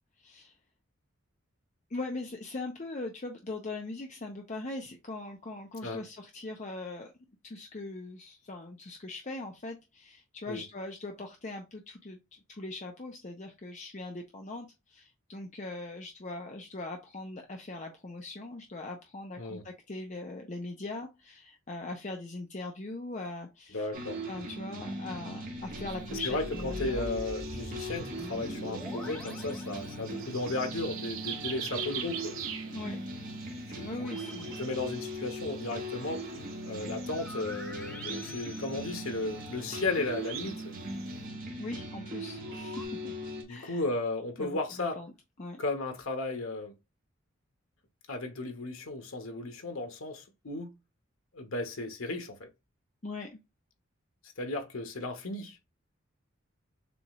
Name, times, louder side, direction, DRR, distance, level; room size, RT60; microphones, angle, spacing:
voice 1, 0.2-0.5 1.9-7.1 7.4-12.2 12.5-23.9 24.3-27.2 27.5-27.7 32.7-33.0 33.8-34.6 41.6-43.1 43.5-43.8 44.4-45.1 45.4-45.6 53.0-53.4, left 2 dB, 35° left, 0.6 m, -40 dB
voice 2, 23.7-24.2 26.1-32.3 33.7-33.9 34.2-34.3 34.6-36.3 36.6-40.7 43.5-45.0 45.6-46.7 48.1-50.7 51.3-52.5 54.4-55.6, left 2 dB, 85° left, 1.1 m, -35 dB
sound 1, 23.9-43.4, equal, 40° right, 1.3 m, -40 dB
sound 2, 25.9-41.3, right 8 dB, 80° right, 1.0 m, -45 dB
sound 3, 26.0-30.6 33.9-35.7 37.1-39.7 42.4-42.8, left 1 dB, 5° left, 0.9 m, -45 dB
6.9 x 2.4 x 3.1 m
head